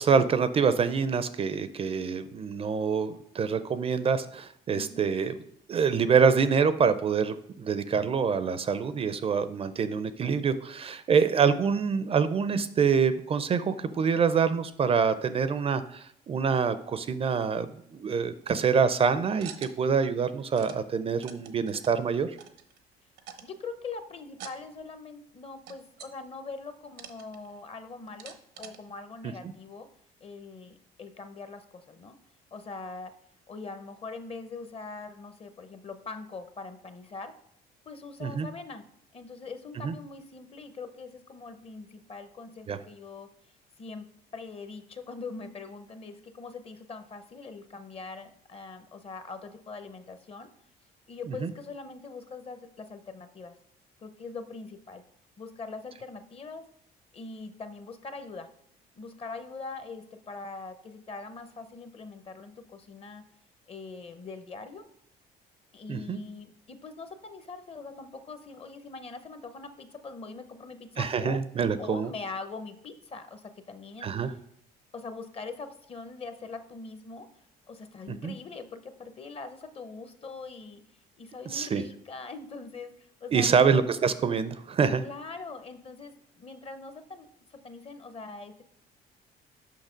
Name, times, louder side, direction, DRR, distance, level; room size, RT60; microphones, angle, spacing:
voice 1, 0.0-5.4 5.7-22.3 38.2-38.5 39.8-39.9 42.7-42.8 51.4-51.5 65.9-66.2 71.0-72.1 74.0-74.3 78.1-78.3 81.5-81.8 83.3-85.0, right 6 dB, 35° right, 13 dB, 0.4 m, -26 dB
voice 2, 4.7-5.0 23.4-29.9 30.2-32.2 32.5-33.1 33.5-37.4 37.9-38.8 39.1-43.3 43.8-44.1 44.3-50.5 51.1-53.5 54.0-55.0 55.4-56.7 57.1-58.5 59.0-63.2 63.7-64.8 65.7-71.4 71.8-74.3 74.9-77.3 77.7-80.8 81.2-83.8 85.0-88.6, left 4 dB, 35° left, 10 dB, 0.8 m, -42 dB
sound 1, 18.4-18.7 19.4-20.0 20.2-20.8 21.2-22.0 22.4-22.9 23.2-23.6 24.3-24.6 24.9-25.0 25.7-26.1 26.9-27.6 28.1-28.8, right 9 dB, 85° right, 0.8 m, -46 dB
6.6 x 5.6 x 5.1 m, 0.71 s
cardioid pair, 110°, 17 cm